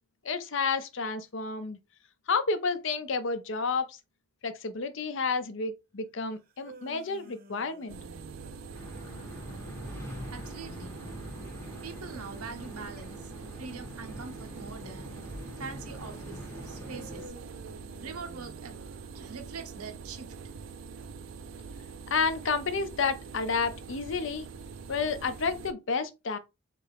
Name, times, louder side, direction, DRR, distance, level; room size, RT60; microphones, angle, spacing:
voice 1, 0.2-1.8 2.3-4.0 4.4-8.0 22.1-24.5 24.9-26.4, left 4 dB, 60° left, 0.6 m, -30 dB
sound 1, 6.4-9.6 16.8-19.7, right 1 dB, 45° right, 0.7 m, -51 dB
sound 2, 7.9-25.7, right 5 dB, 60° right, 0.4 m, -44 dB
sound 3, 8.7-17.3, left 1 dB, 10° left, 0.8 m, -44 dB
voice 2, 10.3-10.9 11.8-15.1 15.6-17.3 18.0-18.8 19.1-20.3, right 4 dB, 90° right, 0.9 m, -43 dB
3.6 x 3.3 x 3.4 m
head